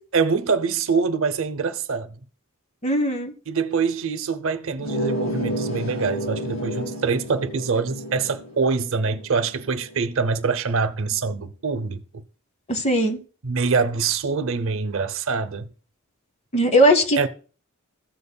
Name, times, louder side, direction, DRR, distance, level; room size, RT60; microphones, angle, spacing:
voice 1, 0.1-2.2 3.5-12.2 13.4-15.7 17.2-17.3, right 5 dB, 70° right, 0.7 m, -24 dB
voice 2, 2.8-3.3 12.7-13.2 16.5-17.3, equal, 30° left, 0.9 m, -19 dB
sound 1, 4.8-10.1, equal, 75° left, 3.1 m, -31 dB
15.0 x 7.0 x 2.2 m
head